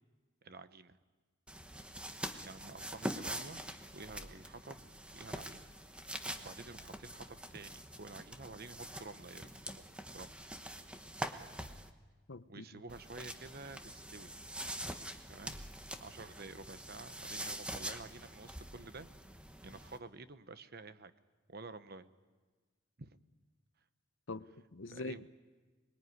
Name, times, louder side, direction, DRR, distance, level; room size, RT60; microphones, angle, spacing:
voice 1, 0.4-1.0 2.4-3.6 3.9-5.7 6.4-10.5 12.5-14.3 15.3-15.6 16.0-21.1 21.5-22.1 23.0-23.2 24.9-25.2, right 3 dB, 50° right, 12 dB, 1.0 m, -50 dB
sound 1, 1.5-11.9 12.9-20.0, right 1 dB, 5° right, 1.1 m, -45 dB
voice 2, 12.3-12.8 24.3-25.3, left 3 dB, 65° left, 14 dB, 0.8 m, -44 dB
25.5 x 21.5 x 9.6 m, 1.4 s
head